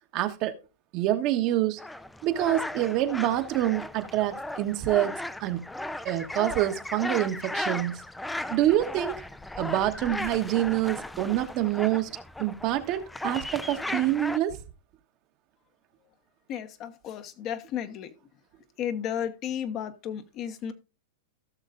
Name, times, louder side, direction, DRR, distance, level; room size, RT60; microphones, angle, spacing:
voice 1, 0.1-0.5 0.9-1.8 2.2-5.6 6.0-8.0 8.5-9.1 9.6-12.1 12.4-14.6, right 13 dB, 45° right, 1.2 m, -26 dB
sound 1, 1.8-14.4, left 1 dB, 5° left, 0.5 m, -36 dB
voice 2, 16.5-18.1 18.8-20.7, left 9 dB, 40° left, 1.1 m, -33 dB
16.5 x 6.4 x 2.5 m
hypercardioid pair, 125°, 0 cm